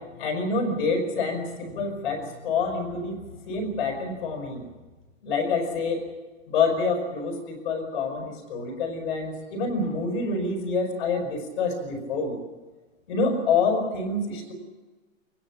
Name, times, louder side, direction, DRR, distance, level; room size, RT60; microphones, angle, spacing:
voice 1, 0.2-3.2 3.5-4.6 5.2-6.1 6.5-12.4 13.1-14.5, left 4 dB, 50° left, 1 dB, 5.8 m, -27 dB
24.0 x 22.0 x 7.5 m, 1.2 s
hypercardioid pair, 175°, 38 cm